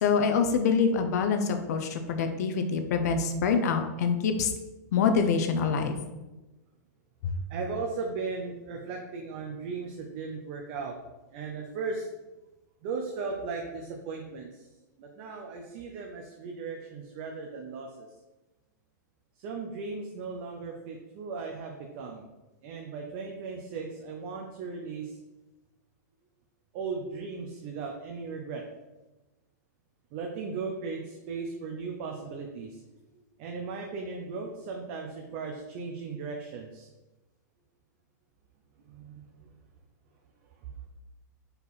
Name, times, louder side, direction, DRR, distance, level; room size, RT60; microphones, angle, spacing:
voice 1, 0.0-4.5 4.9-6.0 7.2-7.3, left 5 dB, 60° left, 6 dB, 0.8 m, -25 dB
voice 2, 7.5-11.0 11.3-12.1 12.8-14.7 15.0-18.1 19.4-22.2 22.6-25.2 26.7-28.6 30.1-32.8 33.4-36.9 38.9-39.5 40.6-40.7, right 4 dB, 40° right, 1 dB, 0.8 m, -37 dB
5.2 x 4.7 x 4.2 m, 1.1 s
supercardioid pair, 155°, 10 cm